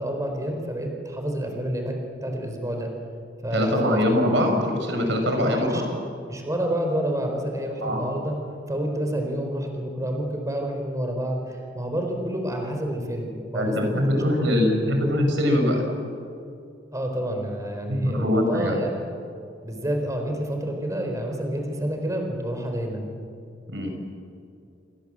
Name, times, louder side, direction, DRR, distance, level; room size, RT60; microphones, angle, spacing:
voice 1, 0.0-2.0 2.2-2.9 3.4-4.0 5.4-5.8 6.3-8.4 8.7-15.0 16.9-18.9 19.6-23.1, right 1 dB, 15° right, 3 dB, 4.3 m, -29 dB
voice 2, 3.5-5.8 7.8-8.0 13.5-15.8 17.9-18.8 23.7-23.9, left 1 dB, 70° right, 4 dB, 6.1 m, -23 dB
29.5 x 24.0 x 7.7 m, 2.5 s
head